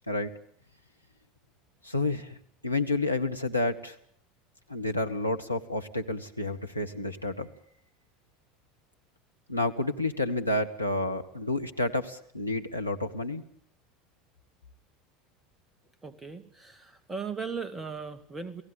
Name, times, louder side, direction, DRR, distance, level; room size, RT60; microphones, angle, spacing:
voice 1, 1.8-2.4 2.6-3.9 4.7-7.5 9.5-13.4, left 2 dB, 90° left, 4 dB, 1.5 m, -30 dB
voice 2, 16.0-18.6, right 5 dB, 15° right, 11 dB, 2.4 m, -37 dB
29.0 x 18.0 x 8.8 m, 0.66 s
figure-of-eight pair, 75°, 0 cm